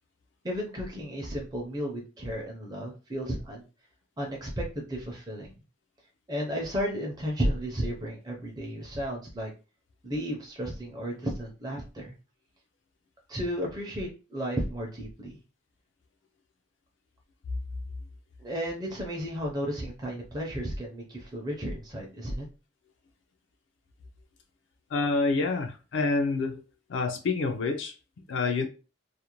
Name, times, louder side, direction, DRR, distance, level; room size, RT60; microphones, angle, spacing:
voice 1, 0.4-3.6 4.2-5.5 6.3-9.5 10.0-12.1 13.3-15.3 18.4-22.5, equal, 20° right, -1 dB, 0.5 m, -33 dB
voice 2, 24.9-26.6 26.9-28.7, left 3 dB, 75° left, 5 dB, 0.4 m, -28 dB
2.4 x 2.1 x 2.9 m, 0.32 s
head